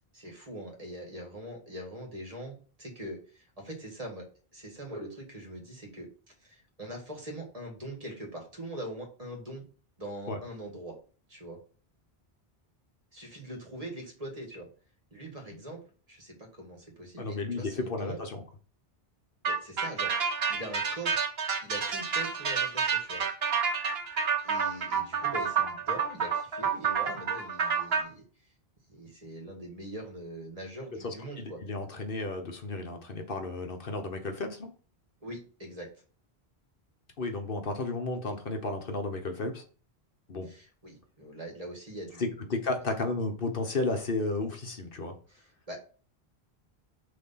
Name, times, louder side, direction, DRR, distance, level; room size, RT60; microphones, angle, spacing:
voice 1, 0.1-4.3 4.5-6.1 6.4-9.6 10.0-10.9 11.3-11.6 13.1-14.7 15.1-15.8 16.1-18.2 19.4-20.1 20.5-21.2 21.6-23.2 24.4-28.2 28.9-31.6 35.2-35.9 40.4-42.3 45.3-45.8, right 1 dB, 35° right, 0 dB, 1.9 m, -42 dB
voice 2, 17.2-18.4 31.0-34.7 37.2-39.6 40.3-40.5 42.2-45.1, left 2 dB, 60° left, 5 dB, 1.2 m, -33 dB
sound 1, 19.4-28.0, right 6 dB, 70° right, 1.2 m, -29 dB
6.2 x 3.4 x 5.6 m, 0.38 s
omnidirectional pair, 1.1 m